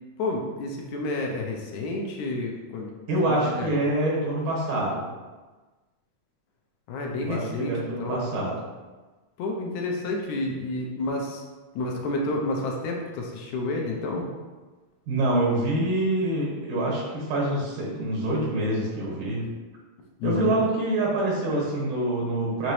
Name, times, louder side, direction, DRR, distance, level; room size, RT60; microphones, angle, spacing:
voice 1, 0.2-2.9 3.3-3.7 6.9-8.3 9.4-11.4 11.8-14.3 19.5-19.6 20.2-20.6, left 2 dB, 85° left, 0 dB, 1.9 m, -30 dB
voice 2, 3.1-5.1 7.2-8.5 15.1-19.5 20.2-22.7, right 1 dB, 90° right, -5 dB, 2.9 m, -26 dB
5.9 x 2.8 x 3.1 m, 1.3 s
omnidirectional pair, 3.4 m